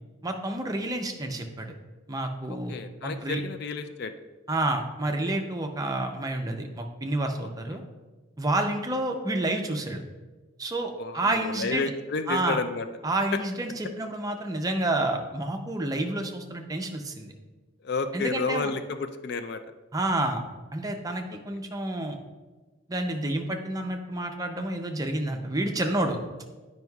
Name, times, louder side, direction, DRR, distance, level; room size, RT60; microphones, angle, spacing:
voice 1, 0.2-1.7 2.1-2.7 3.0-3.4 4.5-7.8 8.4-10.0 10.6-11.9 12.3-12.6 13.0-17.3 18.1-18.7 19.9-20.4 20.7-22.2 22.9-26.2, right 1 dB, 20° right, 4 dB, 0.5 m, -29 dB
voice 2, 2.7-4.1 7.7-7.8 11.0-12.9 17.8-19.6, left 4 dB, 50° left, 9 dB, 0.3 m, -31 dB
9.2 x 5.3 x 2.3 m, 1.2 s
head